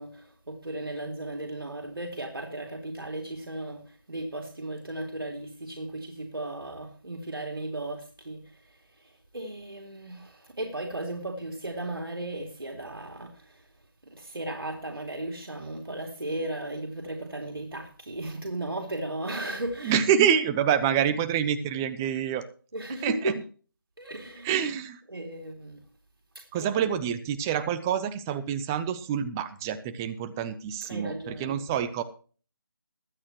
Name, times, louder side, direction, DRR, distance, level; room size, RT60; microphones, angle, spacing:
voice 1, 0.0-13.7 14.0-20.0 22.7-23.4 24.0-24.5 25.1-25.8 26.3-26.7 30.8-31.6, right 1 dB, 85° right, 2.7 m, -36 dB
voice 2, 19.8-22.4 23.0-23.3 24.4-25.0 26.5-32.0, right 8 dB, 10° right, 0.5 m, -27 dB
21.5 x 8.7 x 3.0 m
figure-of-eight pair, 165°, 12 cm